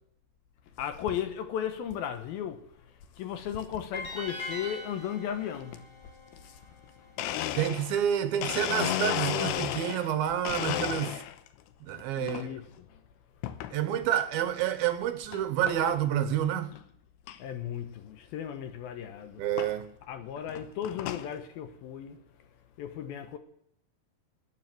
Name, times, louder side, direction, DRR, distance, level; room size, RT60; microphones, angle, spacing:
voice 1, 0.8-7.1 10.5-10.6 11.1-11.2 12.2-13.0 17.4-19.8 20.1-22.2 22.8-23.4, left 9 dB, 70° left, 2.7 m, -36 dB
sound 1, 3.9-7.1, left 2 dB, 45° left, 5.8 m, -42 dB
Domestic sounds home sounds, 6.8-6.9 7.2-10.1 10.4-11.5 11.9-12.4 13.4-13.8 14.3-14.4 15.3-15.4 15.7-16.0 16.4-16.5 16.7-16.8 17.3-17.4 18.7-18.8 19.6-19.7 20.4-21.3, left 12 dB, 85° left, 2.9 m, -33 dB
voice 2, 7.6-11.1 11.8-12.5 13.7-16.7 19.4-19.8, right 10 dB, 75° right, 2.5 m, -28 dB
18.5 x 9.5 x 7.7 m
omnidirectional pair, 4.8 m